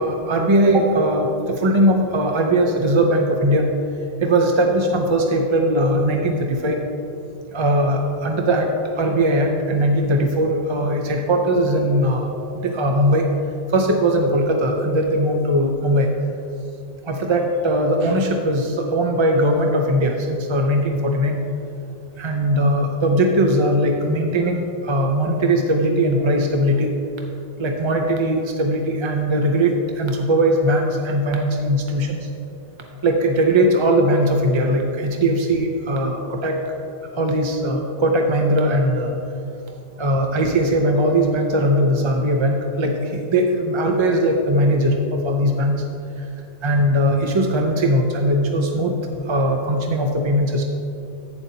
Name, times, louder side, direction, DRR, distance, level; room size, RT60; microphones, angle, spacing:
voice 1, 0.0-3.7 4.2-6.8 7.5-8.7 9.0-13.3 13.7-16.1 17.0-21.4 22.2-26.9 27.2-27.3 27.6-32.3 33.0-36.8 37.2-39.1 40.0-45.8 46.2-46.3 46.6-49.0 49.2-50.6, right 1 dB, 35° right, 2 dB, 0.5 m, -19 dB
11.5 x 8.9 x 2.8 m, 2.7 s
omnidirectional pair, 1.2 m